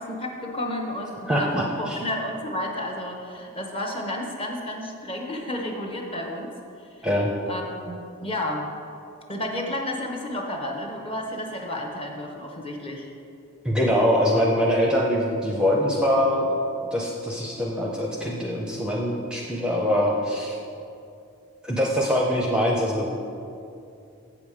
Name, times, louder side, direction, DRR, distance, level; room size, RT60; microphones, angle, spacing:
voice 1, 0.0-6.6 7.5-8.7 9.3-13.1, left 1 dB, 25° left, 1 dB, 0.8 m, -31 dB
voice 2, 1.3-2.0 7.0-7.3 13.6-16.6 16.9-20.6 21.6-23.1, equal, 5° right, -2 dB, 0.6 m, -23 dB
7.6 x 7.1 x 4.8 m, 2.6 s
head